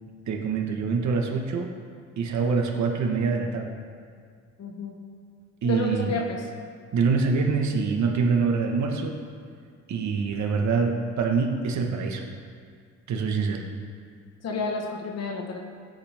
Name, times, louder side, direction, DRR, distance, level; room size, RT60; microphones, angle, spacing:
voice 1, 0.3-1.7 2.2-3.7 5.6-6.1 6.9-9.2 9.9-12.2 13.1-13.6, right 5 dB, 65° right, 2 dB, 1.4 m, -25 dB
voice 2, 4.6-4.9 5.6-6.4 14.4-15.6, left 3 dB, 55° left, 1 dB, 1.4 m, -30 dB
16.5 x 8.0 x 3.6 m, 2.1 s
cardioid pair, 90°, 30 cm